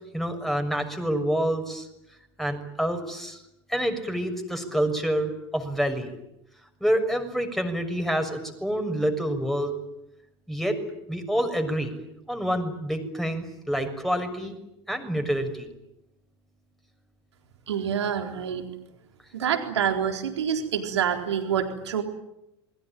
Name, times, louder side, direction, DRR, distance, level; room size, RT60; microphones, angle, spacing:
voice 1, 0.1-1.9 2.4-3.4 3.7-6.1 6.8-9.8 10.5-10.8 11.1-11.9 12.3-14.6 14.9-15.7, equal, ahead, 6 dB, 6.5 m, -27 dB
voice 2, 17.7-18.7 19.3-22.0, right 8 dB, 75° right, 4 dB, 4.1 m, -27 dB
27.5 x 22.0 x 9.3 m, 0.85 s
figure-of-eight pair, 75°, 14 cm